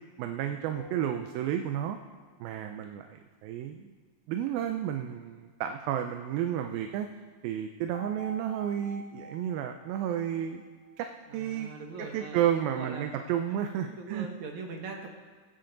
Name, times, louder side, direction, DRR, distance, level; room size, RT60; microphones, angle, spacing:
voice 1, 0.2-2.0 2.4-3.1 3.4-3.9 4.3-7.1 7.4-10.6 11.0-11.1 11.3-11.7 12.1-14.3, right 10 dB, 80° right, 6 dB, 2.4 m, -31 dB
sound 1, 0.7-2.3 7.9-11.3, right 1 dB, 70° left, 4.0 m, -49 dB
voice 2, 11.3-12.5 12.7-13.2 13.5-13.6 13.9-15.1, right 4 dB, 65° right, 2 dB, 2.0 m, -41 dB
22.0 x 8.7 x 3.9 m, 1.5 s
omnidirectional pair, 4.3 m